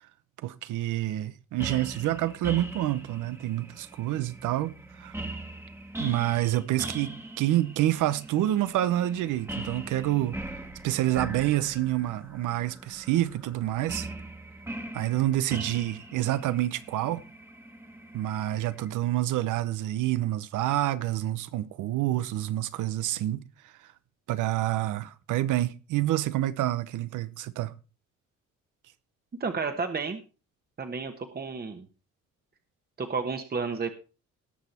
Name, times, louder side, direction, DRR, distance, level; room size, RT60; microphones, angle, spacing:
voice 1, 0.4-4.7 5.0-5.1 6.0-10.4 10.8-14.1 14.9-17.2 18.1-23.4 24.3-27.8, right 14 dB, 85° right, 0.8 m, -28 dB
sound 1, 1.6-18.9, right 2 dB, 10° right, 1.4 m, -41 dB
voice 2, 29.4-30.2 30.8-31.9 33.0-33.9, right 4 dB, 30° right, 1.2 m, -31 dB
18.5 x 6.3 x 4.3 m
cardioid pair, 90°, 30 cm